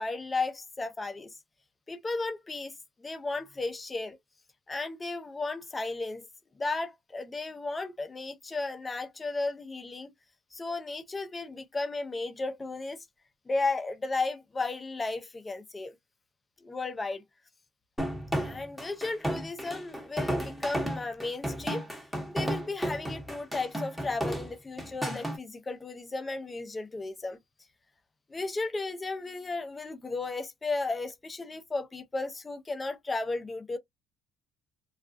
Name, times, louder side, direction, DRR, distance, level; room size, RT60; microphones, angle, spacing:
voice 1, 0.0-1.4 1.9-2.7 3.0-4.2 4.7-6.3 6.6-10.1 10.5-13.1 13.5-16.0 16.6-17.2 18.4-21.9 22.3-27.4 28.3-33.8, left 3 dB, 20° left, 0.5 m, -34 dB
sound 1, 18.0-25.4, equal, ahead, 0.8 m, -33 dB
2.3 x 2.2 x 2.5 m
supercardioid pair, 95°, 0 cm